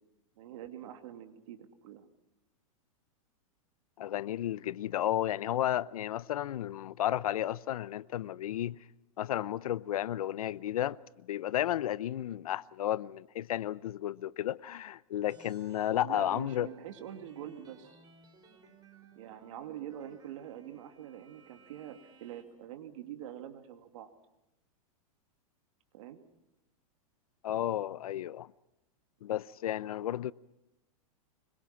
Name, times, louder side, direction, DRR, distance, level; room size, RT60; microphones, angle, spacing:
voice 1, 0.4-2.1 16.0-18.0 19.1-24.1 25.9-26.2, right 11 dB, 65° right, 2.7 m, -45 dB
voice 2, 4.0-8.8 9.2-11.0 11.3-16.7 27.4-28.5 29.2-30.3, left 12 dB, 85° left, 0.7 m, -33 dB
sound 1, 15.3-22.4, right 4 dB, 20° right, 4.5 m, -59 dB
25.5 x 22.5 x 5.9 m
supercardioid pair, 150°, 18 cm